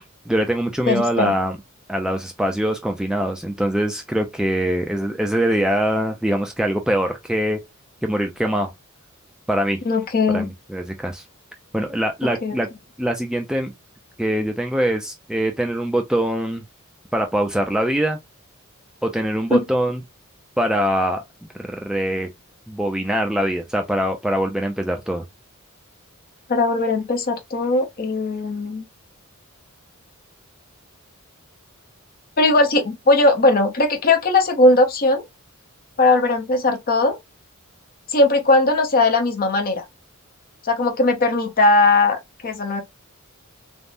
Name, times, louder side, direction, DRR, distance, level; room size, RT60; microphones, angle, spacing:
voice 1, 0.0-1.6 1.9-7.6 8.0-8.7 9.5-9.8 10.3-11.2 11.7-12.7 13.0-13.7 14.2-16.6 17.1-18.2 19.0-20.0 20.6-21.2 21.5-22.3 22.7-25.2, right 1 dB, 5° right, 0.3 m, -23 dB
voice 2, 0.9-1.3 9.9-10.5 12.4-12.5 19.5-19.6 26.5-28.8 32.4-35.2 36.0-37.2 38.1-39.8 40.6-42.8, left 2 dB, 40° left, 0.7 m, -18 dB
3.4 x 2.1 x 2.5 m
head